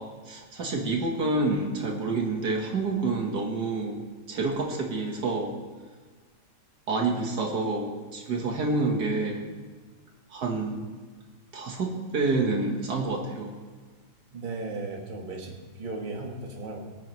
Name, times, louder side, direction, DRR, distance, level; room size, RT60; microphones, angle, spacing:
voice 1, 0.0-5.6 6.9-9.5 10.3-10.9 11.5-13.5, right 3 dB, 65° right, 1 dB, 1.9 m, -28 dB
voice 2, 14.3-16.8, right 3 dB, 30° right, 0 dB, 1.6 m, -36 dB
24.0 x 9.2 x 3.1 m, 1.4 s
omnidirectional pair, 2.0 m